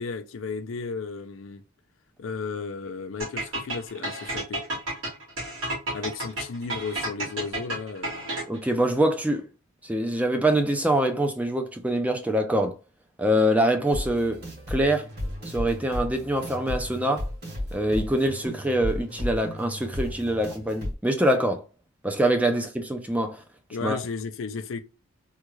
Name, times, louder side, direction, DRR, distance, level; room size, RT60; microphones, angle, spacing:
voice 1, 0.0-1.6 2.2-4.6 5.9-8.4 22.5-22.6 23.7-24.8, left 4 dB, 75° left, 0.5 m, -34 dB
sound 1, 3.2-8.7, right 2 dB, 75° right, 2.0 m, -31 dB
voice 2, 8.5-9.5 9.8-12.7 13.2-15.1 15.5-17.3 17.7-21.6 22.0-23.4 23.8-24.0, right 1 dB, 5° right, 0.4 m, -24 dB
sound 2, 13.9-20.9, left 1 dB, 45° right, 2.0 m, -34 dB
3.6 x 2.3 x 3.1 m
head